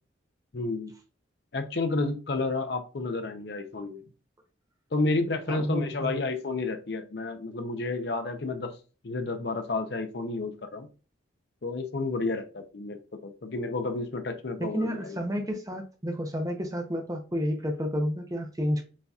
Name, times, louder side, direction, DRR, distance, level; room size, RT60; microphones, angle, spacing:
voice 1, 0.5-0.9 1.5-4.0 4.9-8.8 9.0-10.9 11.6-15.1, left 3 dB, 55° left, 0.6 m, -31 dB
voice 2, 5.5-6.2 14.6-18.8, equal, 20° right, 0.7 m, -31 dB
7.2 x 2.8 x 2.4 m
head